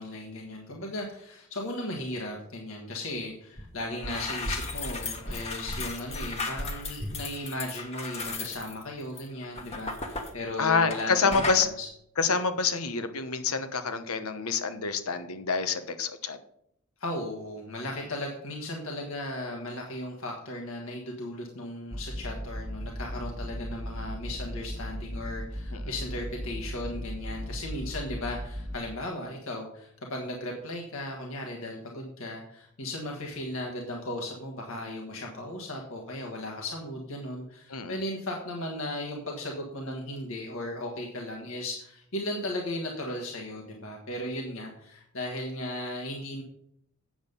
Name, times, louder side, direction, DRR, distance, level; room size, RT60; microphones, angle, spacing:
voice 1, 0.0-11.4 11.8-11.9 17.0-46.4, left 1 dB, 70° left, 0 dB, 1.5 m, -36 dB
sound 1, 3.6-3.7 3.9-11.0 11.3-11.7, left 2 dB, 30° left, 1.2 m, -35 dB
voice 2, 10.6-11.7 12.2-16.4 25.7-25.8 37.7-38.0, left 5 dB, 85° left, 9 dB, 1.0 m, -27 dB
sound 2, 21.9-28.8, equal, 20° right, 1.3 m, -37 dB
8.8 x 7.3 x 5.4 m, 0.74 s
head